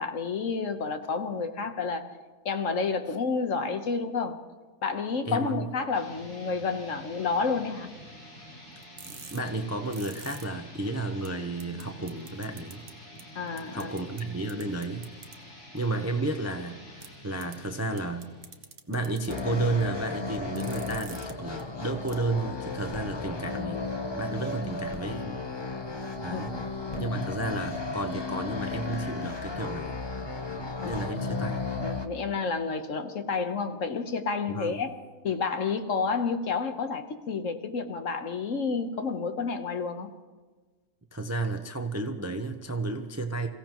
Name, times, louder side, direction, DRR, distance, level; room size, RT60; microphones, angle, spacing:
voice 1, 0.0-2.0 2.4-4.4 4.8-7.9 13.3-13.9 26.3-26.4 30.8-34.9 35.2-40.1, left 5 dB, 60° left, 7 dB, 1.4 m, -30 dB
voice 2, 5.3-5.6 9.1-12.8 13.7-15.1 15.7-18.3 18.9-23.8 24.2-25.4 26.2-26.6 27.0-30.0 30.8-31.7 34.5-34.8 41.1-43.5, right 2 dB, 15° right, 5 dB, 0.6 m, -32 dB
sound 1, 5.9-18.8, equal, 75° left, 4.4 m, -48 dB
sound 2, 8.8-10.4 10.9-11.0 11.2-11.3 11.6-11.8 12.1-12.9 13.2-13.3 13.6-14.2 14.5-15.3 17.0-17.1 17.4-17.5 18.0-19.4 20.3-21.3 21.6-21.7 22.1-22.2, right 5 dB, 45° right, 1.1 m, -45 dB
sound 3, 19.3-32.1, left 4 dB, 20° left, 0.9 m, -34 dB
27.5 x 16.0 x 3.0 m, 1.3 s
omnidirectional pair, 1.6 m